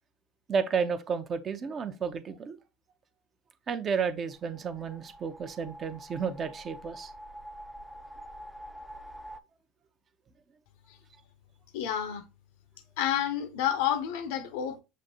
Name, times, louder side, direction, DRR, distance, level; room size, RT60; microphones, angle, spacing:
voice 1, 0.5-2.6 3.7-7.1, right 6 dB, 40° right, 0.6 m, -32 dB
sound 1, 4.3-9.4, equal, 5° left, 0.4 m, -46 dB
voice 2, 11.7-12.2 13.0-14.8, left 10 dB, 75° left, 0.6 m, -29 dB
6.2 x 2.5 x 2.8 m
hypercardioid pair, 75°, 0 cm